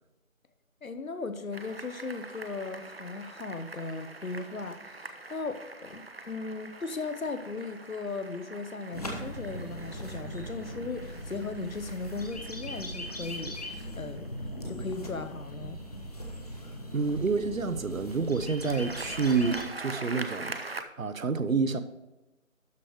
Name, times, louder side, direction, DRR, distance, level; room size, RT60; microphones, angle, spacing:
voice 1, 0.8-14.3 14.7-15.8, left 3 dB, 80° left, 1.1 m, -37 dB
sound 1, 1.5-15.6 18.2-20.8, right 3 dB, 45° right, 0.7 m, -44 dB
sound 2, 8.9-19.6, equal, 30° left, 1.2 m, -39 dB
voice 2, 16.9-21.8, right 4 dB, 75° right, 0.9 m, -28 dB
12.5 x 4.9 x 4.8 m
figure-of-eight pair, 170°, 40 cm